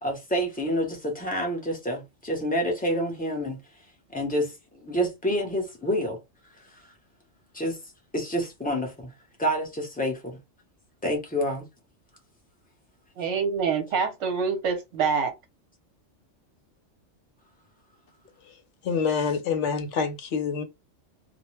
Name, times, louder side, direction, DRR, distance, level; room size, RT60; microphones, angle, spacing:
voice 1, 0.0-3.6 4.1-6.2 7.5-7.8 8.1-9.1 9.4-10.4 11.0-11.6, equal, 10° left, 0.7 m, -28 dB
voice 2, 13.2-15.3, right 5 dB, 70° right, 1.0 m, -26 dB
voice 3, 18.8-20.6, left 6 dB, 70° left, 0.9 m, -26 dB
2.4 x 2.1 x 3.1 m
omnidirectional pair, 1.3 m